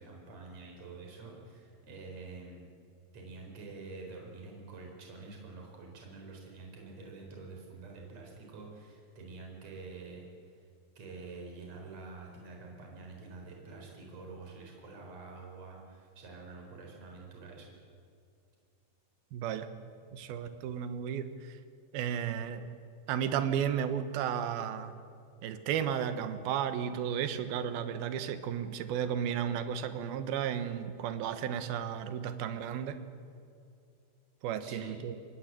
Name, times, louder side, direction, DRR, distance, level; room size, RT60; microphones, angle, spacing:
voice 1, 0.0-2.7 3.1-10.3 10.5-10.7 11.0-17.7 34.6-35.0, right 3 dB, 45° right, 0 dB, 5.2 m, -47 dB
voice 2, 19.3-19.7 20.1-21.6 21.9-22.7 23.1-24.9 25.4-33.0 34.4-35.2, right 8 dB, 75° right, 10 dB, 3.0 m, -33 dB
25.0 x 19.0 x 7.7 m, 2.5 s
omnidirectional pair, 4.5 m